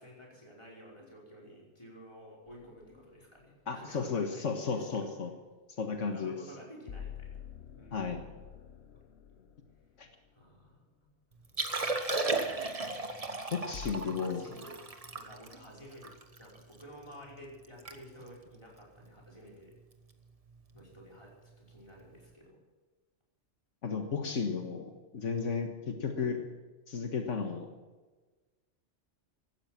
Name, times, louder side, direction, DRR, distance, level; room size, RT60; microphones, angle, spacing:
voice 1, 0.0-5.1 6.0-7.4 7.8-8.1 8.9-9.0 9.3-9.4 10.3-11.1 14.0-14.8 15.1-19.8 20.7-22.6 26.2-26.3, equal, 25° left, -4 dB, 5.4 m, -52 dB
sound 1, 2.5-3.0 6.9-10.3 13.7-13.9, left 8 dB, 65° left, 1.0 m, -47 dB
voice 2, 3.7-5.3 5.8-6.4 7.9-8.2 10.0-10.1 13.5-14.5 23.8-26.4 26.9-27.7, left 5 dB, 85° left, 4 dB, 1.8 m, -34 dB
Liquid, 11.4-16.8 17.3-17.4 17.6-18.0 18.2-18.5 19.1-19.3 20.8-20.9, right 3 dB, 30° right, 1.3 m, -35 dB
17.0 x 12.5 x 6.0 m, 1.3 s
omnidirectional pair, 1.2 m